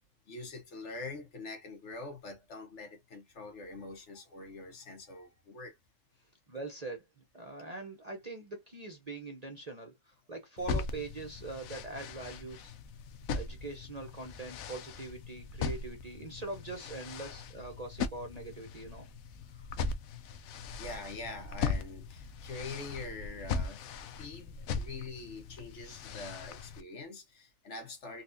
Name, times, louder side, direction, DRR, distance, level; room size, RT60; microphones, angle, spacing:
voice 1, 0.3-5.8 20.8-23.9 24.2-28.2, left 3 dB, 60° left, 1.2 m, -44 dB
voice 2, 6.5-12.7 13.3-19.1 19.5-19.6, right 3 dB, 35° right, 0.7 m, -42 dB
sound 1, 10.6-26.8, left 5 dB, 80° left, 1.0 m, -39 dB
4.1 x 2.4 x 2.5 m
omnidirectional pair, 1.4 m